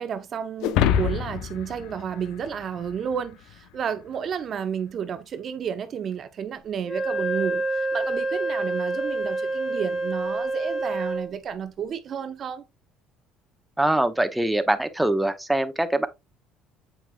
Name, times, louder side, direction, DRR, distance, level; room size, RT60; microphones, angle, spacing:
voice 1, 0.0-12.6, right 7 dB, 50° right, 0.7 m, -31 dB
sound 1, 0.6-3.1, left 9 dB, 75° left, 0.6 m, -26 dB
Wind instrument woodwind instrument, 6.8-11.3, right 2 dB, 30° left, 2.7 m, -27 dB
voice 2, 13.8-16.1, right 1 dB, 5° right, 0.9 m, -23 dB
7.1 x 6.0 x 2.2 m
supercardioid pair, 90°, 0 cm